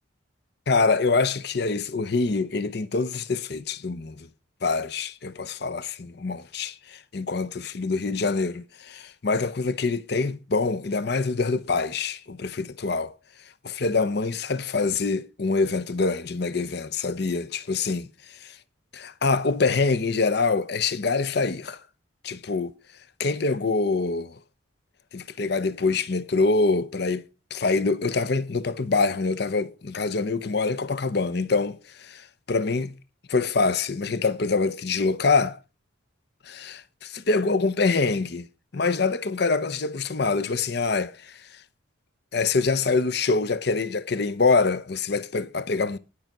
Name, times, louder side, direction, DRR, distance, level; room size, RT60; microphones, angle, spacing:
voice 1, 0.7-4.3 4.6-13.1 13.6-18.6 18.9-21.8 22.2-22.7 23.2-24.4 25.1-27.2 27.5-32.1 32.5-32.9 33.3-35.6 36.5-38.5 38.7-41.5 42.3-46.0, left 4 dB, 55° left, 0.7 m, -25 dB
11.5 x 5.5 x 5.9 m
head